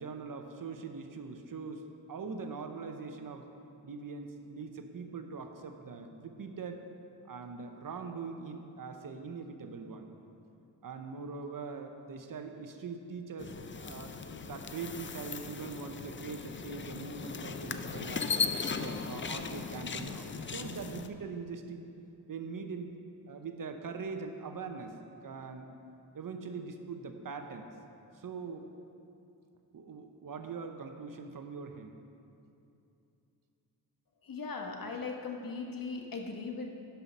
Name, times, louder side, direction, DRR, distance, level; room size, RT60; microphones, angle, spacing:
voice 1, 0.0-3.5 3.8-6.8 7.2-10.1 10.8-18.3 18.6-21.8 22.3-22.9 23.3-25.0 25.2-25.7 26.1-27.7 28.1-28.7 29.7-32.0, right 4 dB, 50° right, 6 dB, 0.9 m, -42 dB
sound 1, 13.4-21.1, left 5 dB, 30° left, 0.5 m, -37 dB
voice 2, 34.2-36.7, left 4 dB, 55° left, 2 dB, 1.3 m, -38 dB
11.0 x 5.8 x 5.4 m, 2.7 s
cardioid pair, 55°, 42 cm